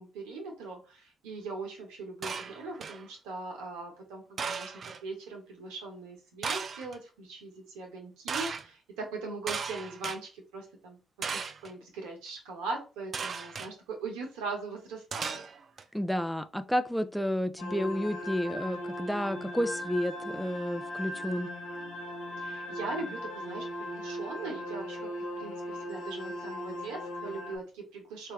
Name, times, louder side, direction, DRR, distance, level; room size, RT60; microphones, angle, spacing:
voice 1, 0.0-4.7 5.0-11.0 11.3-15.4 22.4-25.1 25.3-28.3, right 3 dB, 75° right, 1.2 m, -40 dB
sound 1, 2.2-3.0 4.4-5.0 6.4-7.0 8.3-8.6 9.5-10.2 11.2-11.7 13.1-13.7 15.1-15.8, right 5 dB, 50° right, 0.4 m, -36 dB
voice 2, 15.9-21.5, equal, ahead, 0.5 m, -31 dB
sound 2, 17.6-27.6, left 1 dB, 80° left, 0.9 m, -38 dB
3.3 x 2.7 x 3.2 m
hypercardioid pair, 45°, 0 cm